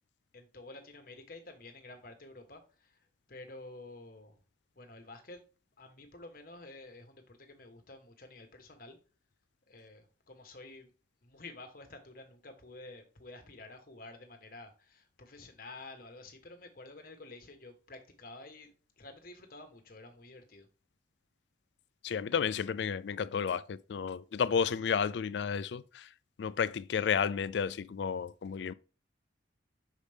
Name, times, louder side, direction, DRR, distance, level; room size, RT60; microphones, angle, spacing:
voice 1, 0.3-4.3 4.8-5.4 5.8-9.0 9.7-10.9 11.2-20.7, left 2 dB, 50° left, 1.2 m, -50 dB
voice 2, 22.0-26.1 26.4-28.7, left 6 dB, 70° left, 0.3 m, -32 dB
6.5 x 5.0 x 3.4 m
head